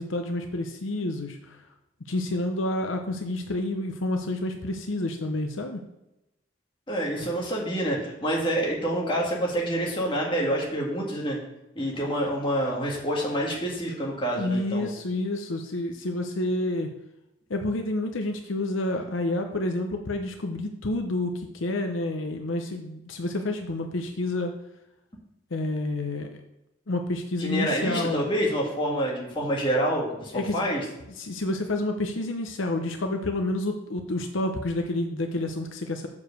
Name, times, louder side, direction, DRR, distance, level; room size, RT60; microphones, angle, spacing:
voice 1, 0.0-1.6 2.0-5.8 14.3-16.9 17.5-24.6 25.5-26.3 26.9-28.2 30.3-30.7 31.2-36.1, left 2 dB, 75° left, 4 dB, 0.8 m, -29 dB
voice 2, 6.9-11.4 11.8-14.9 27.4-30.8, equal, 25° left, -3 dB, 1.7 m, -27 dB
7.2 x 4.7 x 6.6 m, 0.91 s
head